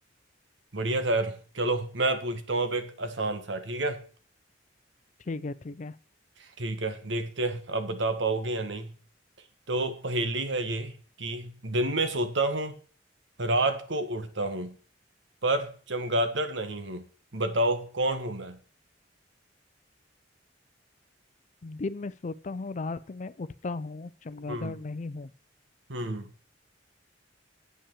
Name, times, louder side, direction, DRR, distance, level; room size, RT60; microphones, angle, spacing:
voice 1, 0.7-4.0 6.4-8.9 9.7-12.8 13.4-14.8 15.4-17.1 17.3-18.6 24.5-24.8 25.9-26.3, right 2 dB, 70° right, 10 dB, 1.3 m, -29 dB
voice 2, 5.3-5.9 21.6-25.3, left 3 dB, 40° left, 17 dB, 0.5 m, -36 dB
8.4 x 5.6 x 7.2 m, 0.41 s
head